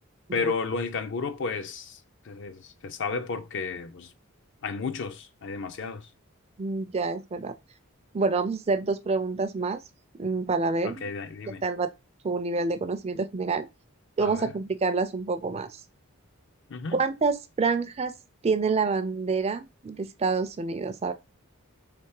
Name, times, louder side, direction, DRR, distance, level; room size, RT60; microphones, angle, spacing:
voice 1, 0.3-2.0 2.3-4.1 4.6-6.1 10.8-11.6 14.2-14.5 16.7-17.0, left 4 dB, 55° left, 0.5 m, -32 dB
voice 2, 6.6-7.5 8.1-9.8 10.2-11.1 11.5-11.9 12.2-13.7 14.2-15.8 16.9-18.1 18.4-21.1, right 4 dB, 30° right, 0.4 m, -27 dB
3.4 x 3.2 x 4.7 m
head